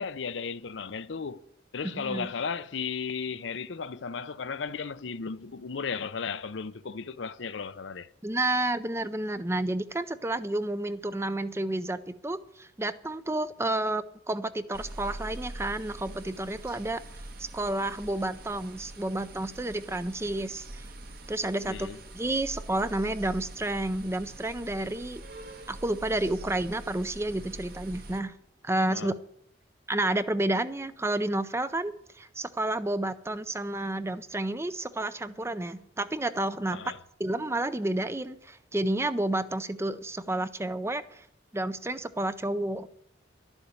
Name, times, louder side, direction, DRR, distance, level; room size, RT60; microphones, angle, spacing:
voice 1, 0.0-1.4 1.7-8.1 21.7-22.0 28.9-29.1 36.7-37.0, left 5 dB, 75° left, 0.6 m, -35 dB
voice 2, 1.8-2.3 8.2-17.0 17.4-20.9 21.3-21.9 22.1-25.2 25.7-28.3 28.6-29.1 29.9-36.9 37.2-41.3 41.5-42.9, right 1 dB, 15° right, 0.5 m, -30 dB
sound 1, 14.7-28.2, right 1 dB, 55° right, 1.4 m, -44 dB
12.0 x 7.1 x 9.6 m
head